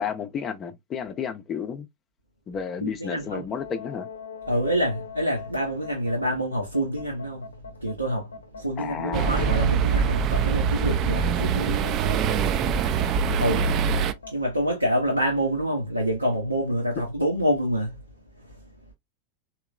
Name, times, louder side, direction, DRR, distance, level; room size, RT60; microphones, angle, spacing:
voice 1, 0.0-1.9 2.5-4.1 8.8-9.6, left 7 dB, 25° left, 0.6 m, -32 dB
voice 2, 2.8-3.4 4.5-7.5 7.8-12.0 13.4-13.7 14.3-17.9, equal, 85° right, 0.8 m, -26 dB
sound 1, 3.5-14.3, left 5 dB, 75° left, 0.7 m, -42 dB
sound 2, 9.1-14.1, right 6 dB, 35° right, 0.4 m, -23 dB
3.7 x 2.9 x 2.2 m
figure-of-eight pair, 90°, 0 cm